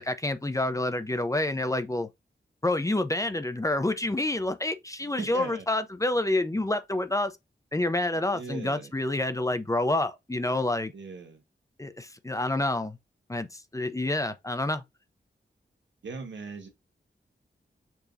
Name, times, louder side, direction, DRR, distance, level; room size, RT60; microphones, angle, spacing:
voice 1, 0.0-2.1 2.6-7.3 7.7-10.9 11.8-13.0 13.3-14.8, left 2 dB, 15° left, 0.6 m, -28 dB
voice 2, 5.2-5.7 8.3-8.9 10.9-11.4 16.0-16.7, right 4 dB, 90° right, 1.4 m, -39 dB
6.9 x 3.0 x 2.6 m
wide cardioid pair, 90°, 19 cm